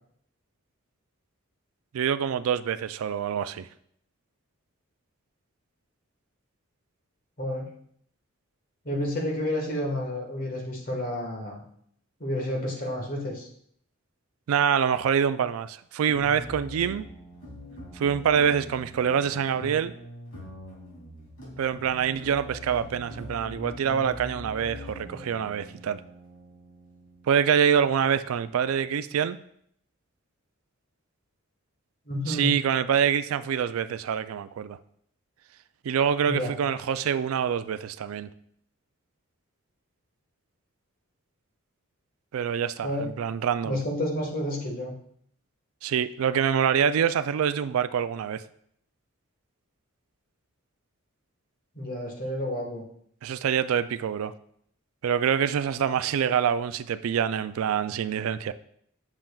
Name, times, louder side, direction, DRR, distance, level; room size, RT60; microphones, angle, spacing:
voice 1, 1.9-3.7 14.5-17.1 18.0-19.9 21.6-26.0 27.3-29.4 32.3-34.8 35.8-38.3 42.3-43.8 45.8-48.4 53.2-54.3 55.0-58.5, right 8 dB, 85° right, 13 dB, 0.3 m, -25 dB
voice 2, 7.4-7.7 8.8-11.6 12.2-13.5 25.1-25.2 32.1-32.6 36.3-36.5 42.8-43.0 43.6-44.9 51.7-52.8, left 1 dB, 45° left, 0 dB, 1.5 m, -30 dB
sound 1, 16.1-28.9, equal, 90° left, 2.8 m, -43 dB
7.6 x 7.1 x 2.3 m, 0.66 s
head